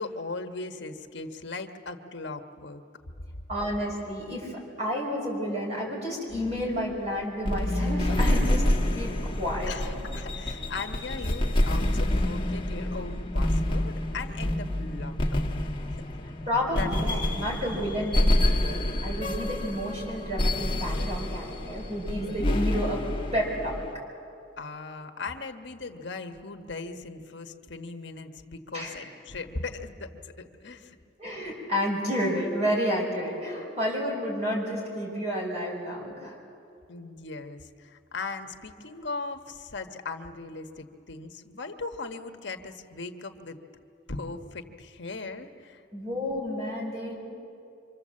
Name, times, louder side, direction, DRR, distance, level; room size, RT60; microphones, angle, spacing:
voice 1, 0.0-2.8 9.7-15.5 15.9-16.2 16.7-16.9 17.3-17.6 24.6-31.0 36.9-43.6 44.1-45.8, left 3 dB, 65° left, 6 dB, 1.3 m, -38 dB
voice 2, 3.5-8.6 8.9-10.0 16.5-23.0 23.3-23.8 28.7-29.0 31.2-36.3 45.9-47.1, equal, 35° right, -2 dB, 5.9 m, -30 dB
sound 1, 6.3-23.9, left 1 dB, 25° left, 1.5 m, -28 dB
26.0 x 26.0 x 7.6 m, 2.5 s
head